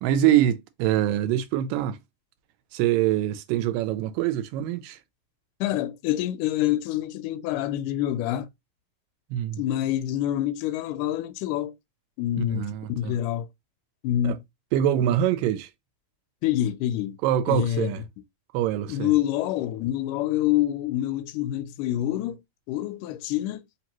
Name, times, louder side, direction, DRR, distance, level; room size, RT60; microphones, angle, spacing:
voice 1, 0.0-2.0 2.7-5.0 9.3-9.6 12.5-13.1 14.2-14.4 14.7-15.7 17.2-18.0 18.5-19.1, right 11 dB, 80° right, 2.2 m, -24 dB
voice 2, 5.6-8.5 9.6-11.7 12.2-13.5 14.0-14.4 16.4-17.2 17.5-17.9 18.9-22.4 22.7-23.6, left 13 dB, 80° left, 2.0 m, -26 dB
5.1 x 2.7 x 2.9 m
omnidirectional pair, 4.0 m